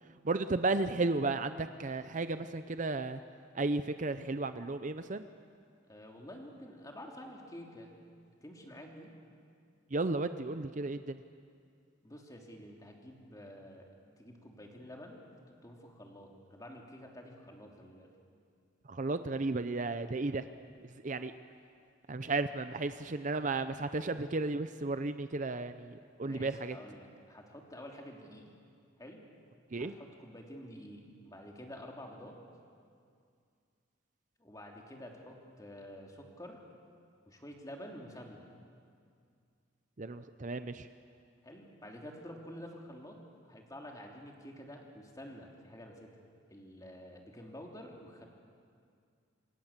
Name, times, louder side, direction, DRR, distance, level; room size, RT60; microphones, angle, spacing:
voice 1, 0.2-3.2 3.5-5.3 9.9-11.2 18.9-20.5 21.0-21.3 22.1-26.8 29.7-29.9 40.0-40.9, right 3 dB, 40° right, 10 dB, 0.7 m, -34 dB
voice 2, 5.9-7.9 8.4-9.1 12.0-13.9 14.2-15.3 15.6-18.1 26.2-28.5 29.0-29.2 29.7-32.4 34.4-36.6 37.3-38.4 41.4-43.2 43.5-46.1 46.5-48.3, equal, 20° left, 0 dB, 3.2 m, -49 dB
27.0 x 25.5 x 7.4 m, 2.3 s
head